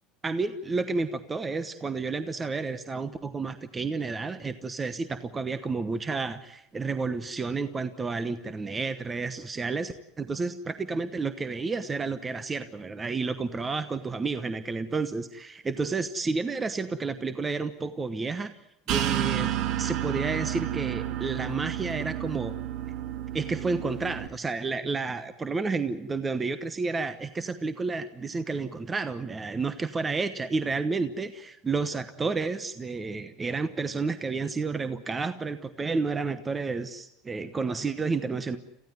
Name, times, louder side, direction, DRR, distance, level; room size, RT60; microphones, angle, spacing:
voice 1, 0.2-18.5 18.9-19.5 19.8-22.5 23.3-38.6, right 4 dB, 20° right, 11 dB, 1.0 m, -31 dB
sound 1, 18.9-24.3, right 12 dB, 55° right, 1.1 m, -31 dB
27.0 x 15.5 x 9.4 m, 0.84 s
supercardioid pair, 125°, 0 cm